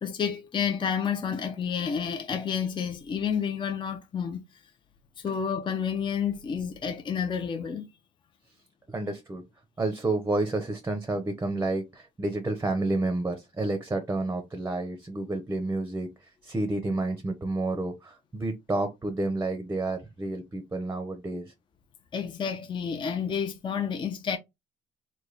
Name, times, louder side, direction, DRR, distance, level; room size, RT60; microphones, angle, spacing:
voice 1, 0.0-4.4 5.2-7.9 22.1-24.4, left 7 dB, 30° left, 0.5 m, -30 dB
voice 2, 8.9-9.4 9.8-21.5, right 2 dB, 15° right, 0.7 m, -30 dB
3.3 x 2.2 x 3.9 m
cardioid pair, 110°, 17 cm